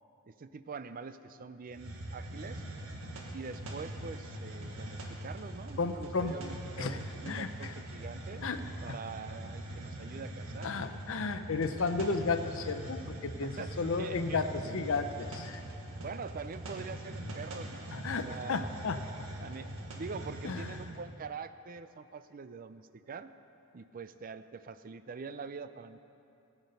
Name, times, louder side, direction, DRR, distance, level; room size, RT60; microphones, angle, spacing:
voice 1, 0.3-2.6 3.3-8.4 8.8-10.7 13.4-14.8 16.0-18.6 19.4-23.3 23.7-26.0, right 5 dB, 40° right, 12 dB, 0.4 m, -44 dB
Hiss, 1.7-21.0, right 1 dB, 70° right, 1.5 m, -42 dB
voice 2, 5.8-6.4 6.8-7.0 7.3-7.7 8.4-9.0 10.6-15.6 17.9-19.3 20.4-20.8, left 4 dB, 65° left, 9 dB, 0.6 m, -33 dB
17.0 x 8.2 x 5.4 m, 2.7 s
head